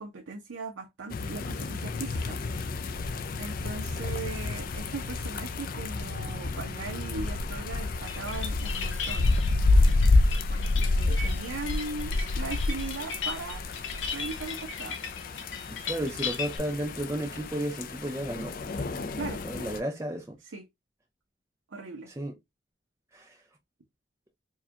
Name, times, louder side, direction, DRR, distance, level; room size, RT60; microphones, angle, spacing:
voice 1, 0.0-2.4 2.8-9.3 9.6-13.6 14.1-15.0 19.1-19.4 20.4-20.7 21.7-22.1, right 3 dB, 75° right, 0.6 m, -39 dB
sound 1, 1.1-19.8, left 3 dB, 45° left, 0.4 m, -29 dB
sound 2, 8.1-16.6, left 6 dB, 70° left, 0.8 m, -37 dB
voice 2, 15.9-19.2 19.4-20.4 22.2-22.3 23.1-23.4, right 1 dB, 15° right, 0.4 m, -33 dB
4.6 x 2.2 x 2.8 m
head